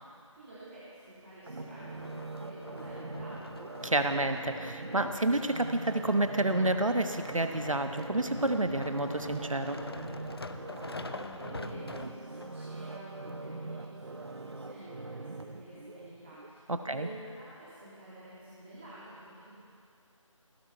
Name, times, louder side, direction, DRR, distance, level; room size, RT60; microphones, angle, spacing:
voice 1, 0.4-3.7 10.7-19.5, right 1 dB, 20° right, -12 dB, 2.7 m, -49 dB
sound 1, 1.5-12.5 13.2-13.3, left 3 dB, 50° left, 0.7 m, -45 dB
Synth Loop Morphed, 1.5-16.5 16.9-17.0, right 3 dB, 55° right, 0.9 m, -43 dB
voice 2, 3.8-9.8 16.7-17.1, right 2 dB, 80° right, 7 dB, 1.2 m, -29 dB
16.5 x 11.5 x 5.7 m, 2.3 s
figure-of-eight pair, 165°, 17 cm